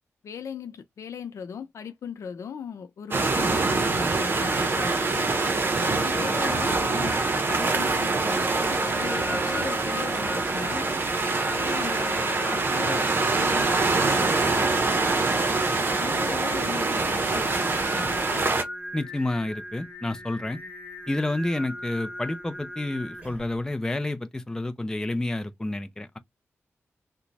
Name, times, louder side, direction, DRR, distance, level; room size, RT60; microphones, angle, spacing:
voice 1, 0.2-5.3 5.8-10.9 11.5-15.5 16.0-18.4, left 7 dB, 85° left, 0.6 m, -38 dB
sound 1, 3.1-18.6, right 3 dB, 45° right, 0.8 m, -25 dB
Singing, 4.0-23.6, equal, 20° right, 1.8 m, -38 dB
voice 2, 18.9-20.6 21.1-26.2, left 2 dB, 10° left, 0.5 m, -29 dB
3.0 x 2.2 x 4.0 m
wide cardioid pair, 110°, 5 cm